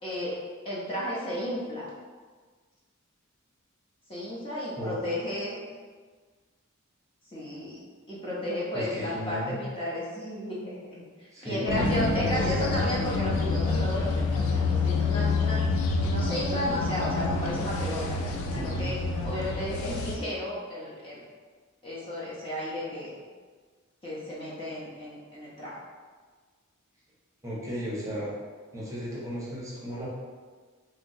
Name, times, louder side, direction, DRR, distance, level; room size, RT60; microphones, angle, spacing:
voice 1, 0.0-1.9 4.1-5.6 7.3-7.8 8.1-15.6 15.9-18.2 18.5-21.2 21.8-23.1 24.0-25.8, left 1 dB, 25° left, -7 dB, 0.7 m, -33 dB
voice 2, 8.7-9.6 11.3-12.7 18.5-18.8 27.4-28.3 28.7-30.1, equal, 15° right, -7 dB, 0.7 m, -34 dB
sound 1, 11.7-20.2, left 3 dB, 70° left, 0.4 m, -27 dB
3.1 x 2.8 x 2.7 m, 1.5 s
head